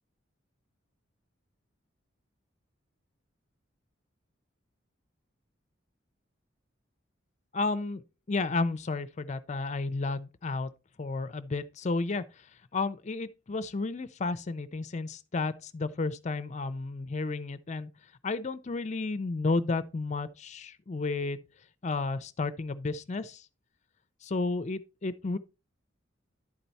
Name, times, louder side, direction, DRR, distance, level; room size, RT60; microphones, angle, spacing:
voice 1, 7.5-8.0 8.3-10.7 11.0-12.5 12.7-17.9 18.2-21.4 21.8-23.5 24.2-25.4, left 3 dB, 35° left, 0.4 m, -32 dB
11.0 x 4.5 x 4.1 m
head